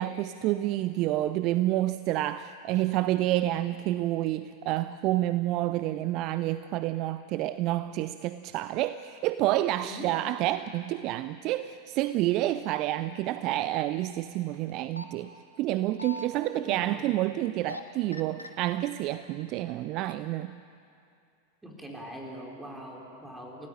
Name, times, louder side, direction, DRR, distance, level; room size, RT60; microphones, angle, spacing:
voice 1, 0.0-15.3 15.6-20.6, right 15 dB, 40° right, 14 dB, 0.6 m, -29 dB
voice 2, 9.8-10.1 16.5-17.1 21.6-23.7, equal, 10° right, 0 dB, 4.8 m, -42 dB
sound 1, 14.7-15.0 15.7-16.3 17.4-17.8 18.1-18.5 19.2-19.7 20.1-20.2, left 2 dB, 85° left, 1.5 m, -39 dB
29.0 x 17.5 x 9.1 m, 2.5 s
figure-of-eight pair, 90°, 0 cm